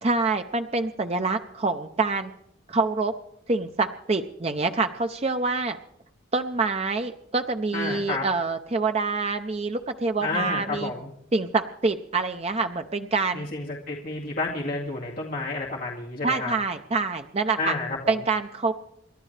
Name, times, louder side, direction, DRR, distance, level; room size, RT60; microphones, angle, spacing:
voice 1, 0.0-2.3 2.7-3.1 3.5-5.8 6.3-10.9 11.3-13.5 16.2-17.7 18.1-18.7, right 3 dB, 30° right, 6 dB, 0.5 m, -26 dB
voice 2, 7.7-8.3 10.2-11.1 13.3-16.5 17.6-18.1, left 3 dB, 45° left, -3 dB, 2.0 m, -30 dB
28.5 x 12.0 x 3.3 m, 0.81 s
head